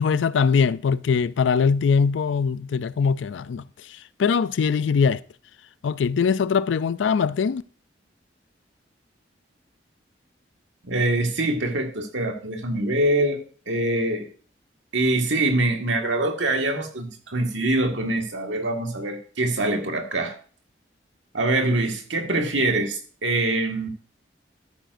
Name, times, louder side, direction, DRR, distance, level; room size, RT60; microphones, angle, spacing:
voice 1, 0.0-3.6 3.9-5.2 5.8-7.6, left 6 dB, 85° left, 0.4 m, -22 dB
voice 2, 10.8-13.4 13.7-14.3 14.9-20.3 21.3-23.9, right 2 dB, 90° right, 1.8 m, -24 dB
13.0 x 9.2 x 2.6 m
head